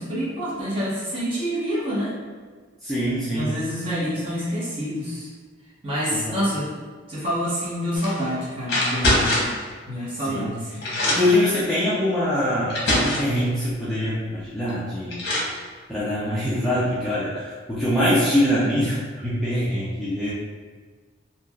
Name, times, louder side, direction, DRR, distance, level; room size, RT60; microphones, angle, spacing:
voice 1, 0.0-2.1 3.3-5.3 5.8-6.7 7.1-9.4 9.9-11.0, equal, 30° right, -10 dB, 1.0 m, -27 dB
voice 2, 2.8-3.5 6.1-6.4 10.2-10.5 11.0-15.3 15.9-20.3, left 1 dB, ahead, -11 dB, 0.4 m, -24 dB
sound 1, 7.9-8.2 8.7-9.6 10.4-10.5 10.8-11.4 12.2-12.3 12.7-13.4 14.7-14.8 15.1-15.5, left 1 dB, 60° left, 0.8 m, -23 dB
3.1 x 2.4 x 2.3 m, 1.5 s
head